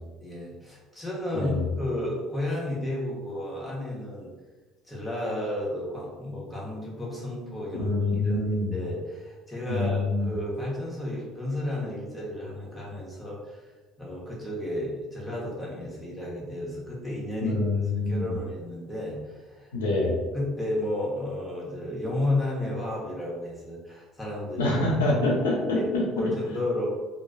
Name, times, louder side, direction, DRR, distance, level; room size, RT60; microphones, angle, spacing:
voice 1, 0.2-4.3 4.9-7.9 8.2-13.6 14.0-17.6 17.9-19.7 20.3-24.7 25.2-25.4 25.7-25.9 26.2-26.9, left 1 dB, 10° left, -5 dB, 1.1 m, -32 dB
voice 2, 1.3-1.7 7.7-8.7 9.7-10.3 17.4-18.3 19.7-20.2 24.6-26.3, left 2 dB, 80° left, -3 dB, 0.6 m, -26 dB
3.0 x 2.2 x 2.5 m, 1.3 s
hypercardioid pair, 55°, 0 cm